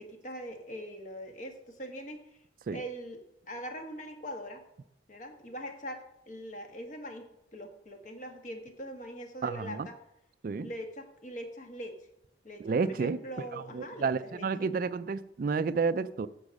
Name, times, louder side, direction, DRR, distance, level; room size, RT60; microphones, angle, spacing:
voice 1, 0.0-2.2 2.7-4.6 5.1-7.2 7.5-10.0 10.6-11.9 12.4-14.7, equal, 45° left, 1.4 m, -42 dB
voice 2, 9.4-9.9 10.4-10.7 12.6-13.2 13.5-16.3, right 5 dB, 50° right, 0.4 m, -31 dB
9.7 x 7.2 x 5.2 m
head